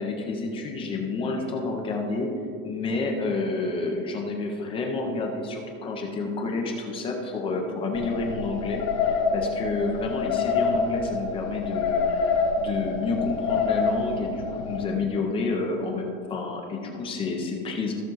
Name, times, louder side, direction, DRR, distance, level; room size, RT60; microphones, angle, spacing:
voice 1, 0.0-17.9, left 3 dB, 15° left, 2 dB, 0.4 m, -29 dB
sound 1, 7.9-14.9, left 5 dB, 85° left, 2.2 m, -27 dB
15.0 x 5.9 x 3.8 m, 2.5 s
supercardioid pair, 175°, 41 cm